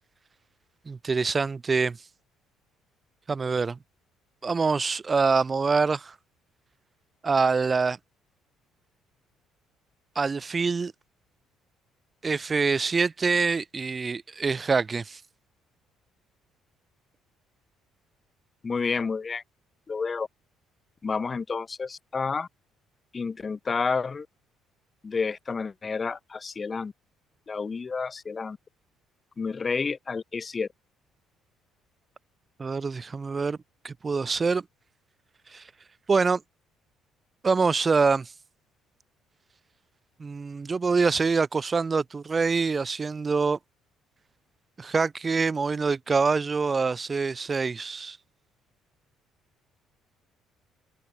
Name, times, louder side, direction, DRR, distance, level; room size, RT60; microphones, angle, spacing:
voice 1, 0.9-2.0 3.3-3.8 4.4-6.1 7.2-8.0 10.2-10.9 12.2-15.2 32.6-33.6 33.8-34.6 35.5-35.6 36.1-36.4 37.4-38.3 40.2-43.6 44.8-48.2, right 4 dB, 30° right, 0.9 m, -25 dB
voice 2, 18.6-19.4 19.9-20.3 21.0-22.5 23.1-24.3 25.0-26.9 27.5-28.6 29.4-30.7, left 5 dB, 30° left, 0.9 m, -30 dB
cardioid pair, 85°, 0 cm